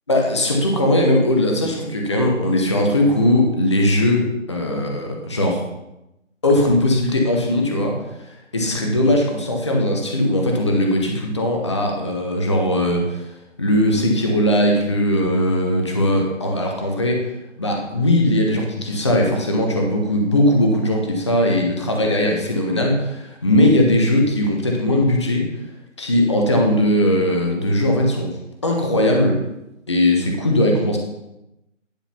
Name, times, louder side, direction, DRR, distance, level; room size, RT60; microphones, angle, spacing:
voice 1, 0.1-5.6 6.4-7.9 8.5-13.2 13.6-17.3 17.6-25.5 26.0-28.4 28.6-29.4 29.9-31.0, left 1 dB, 25° left, 1 dB, 0.8 m, -19 dB
10.5 x 3.9 x 5.6 m, 0.90 s
figure-of-eight pair, 155°, 38 cm